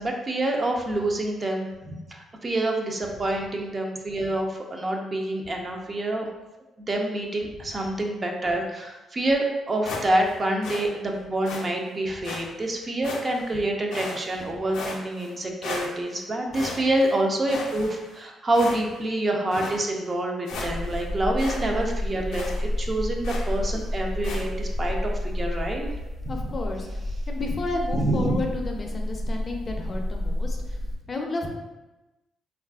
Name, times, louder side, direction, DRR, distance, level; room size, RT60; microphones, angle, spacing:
voice 1, 0.0-6.3 6.8-25.9 26.2-26.5 27.9-28.4, right 1 dB, 30° right, 1 dB, 0.4 m, -27 dB
sound 1, 9.8-10.3 10.6-10.9 11.4-11.6 12.2-12.4 13.0-13.5 13.9-14.4 14.7-15.3 15.6-16.2 16.5-17.1 17.5-18.2 18.5-19.0 19.5-19.8 20.2-20.3 20.5-21.0 21.4-21.6 21.9-22.0 22.3-22.6 23.2-23.6 24.2-24.4, left 3 dB, 85° left, 0.5 m, -35 dB
sound 2, 20.5-31.0, left 1 dB, 60° right, 0.8 m, -30 dB
voice 2, 26.3-26.9 27.3-30.8 31.1-31.5, left 2 dB, 35° left, 2 dB, 0.4 m, -31 dB
3.3 x 2.4 x 2.3 m, 1.1 s
cardioid pair, 90°, 0 cm